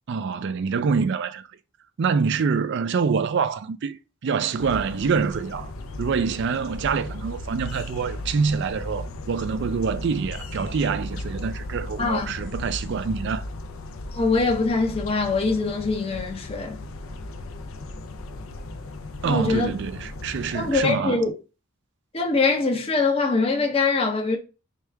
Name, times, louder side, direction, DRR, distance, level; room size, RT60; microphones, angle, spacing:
voice 1, 0.1-1.4 2.0-5.7 6.0-13.4 19.2-21.2, right 5 dB, 55° right, 0.4 m, -26 dB
the birds are awake loopable, 4.6-20.8, left 2 dB, 75° left, 0.5 m, -36 dB
voice 2, 12.0-12.3 14.1-16.8 19.2-19.7 20.5-21.4 22.1-24.4, left 3 dB, 30° left, 0.6 m, -23 dB
4.6 x 2.4 x 3.3 m
head